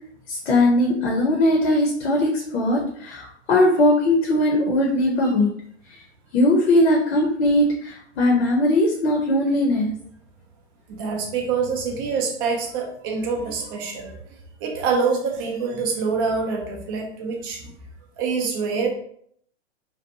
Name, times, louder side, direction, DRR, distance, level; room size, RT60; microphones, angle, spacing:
voice 1, 0.3-5.5 6.3-9.9, left 1 dB, 70° left, -1 dB, 0.7 m, -19 dB
voice 2, 10.9-14.2 14.6-17.7 18.2-18.9, right 5 dB, 20° right, 1 dB, 0.3 m, -25 dB
2.6 x 2.1 x 2.7 m, 0.65 s
hypercardioid pair, 130°, 35 cm